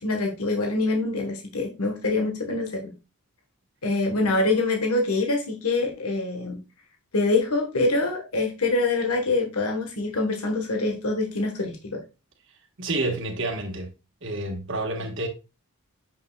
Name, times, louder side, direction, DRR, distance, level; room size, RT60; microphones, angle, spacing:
voice 1, 0.0-2.9 3.8-6.6 7.1-12.0, left 2 dB, 85° left, 1.5 m, -25 dB
voice 2, 12.8-13.9 14.2-15.3, right 2 dB, 55° right, 1.6 m, -29 dB
7.3 x 6.6 x 2.4 m
head